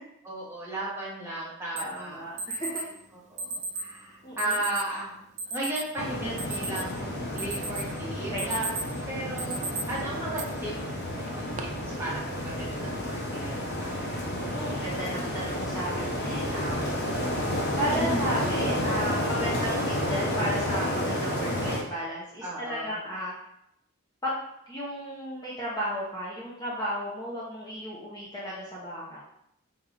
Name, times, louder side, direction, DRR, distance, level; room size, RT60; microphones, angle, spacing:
voice 1, 0.2-2.2 3.3-5.1 5.5-8.7 9.1-9.6 9.9-10.7 11.0-11.7 12.0-14.2 17.9-18.2 22.4-22.9, right 1 dB, 10° right, -6 dB, 1.2 m, -35 dB
voice 2, 1.7-2.8 4.2-4.6 8.3-8.4 14.3-17.1 17.8-23.3 24.2-24.4 24.7-29.2, equal, 15° left, -7 dB, 0.7 m, -34 dB
Alarm, 1.8-1.9 2.4-2.8 3.4-3.9 4.4-4.9 5.4-5.8 6.2-7.0 7.4-7.9 8.2-8.9 9.4-9.8 10.4-10.5 11.2-11.6, right 3 dB, 35° right, 0.3 m, -34 dB
sound 1, 6.0-21.8, left 1 dB, 50° left, 0.9 m, -31 dB
4.2 x 3.8 x 3.3 m, 0.79 s
head